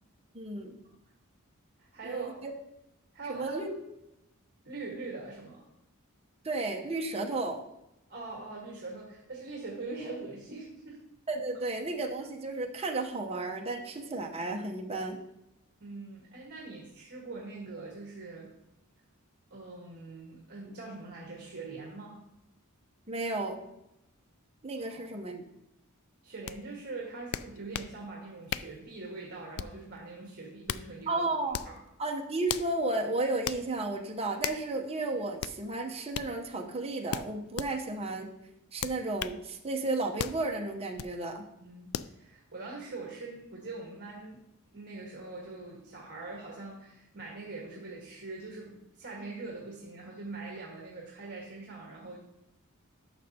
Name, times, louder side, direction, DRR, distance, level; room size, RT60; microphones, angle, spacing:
voice 1, 0.3-0.7 2.0-2.5 3.2-3.7 6.4-7.6 11.3-15.2 23.1-23.6 24.6-25.4 31.1-31.6 32.0-38.3 38.7-41.4, right 2 dB, 30° right, 2 dB, 0.9 m, -33 dB
voice 2, 1.8-2.5 3.1-3.6 4.6-5.6 8.1-11.0 15.8-18.5 19.5-22.2 24.8-25.2 26.2-31.2 31.6-31.8 41.6-44.4 44.7-52.2, right 3 dB, 50° right, -3 dB, 1.5 m, -42 dB
sound 1, 26.5-26.6 27.3-27.9 28.5-28.8 29.6-29.9 30.4-30.9 31.5-31.8 32.5-32.7 33.5-33.6 34.4-34.7 35.4-35.6 36.1-36.3 37.1-37.7 38.8-39.4 40.2-40.4 41.0-41.1 41.9-42.1, left 10 dB, 75° left, 0.3 m, -36 dB
11.0 x 6.4 x 2.8 m, 0.88 s
head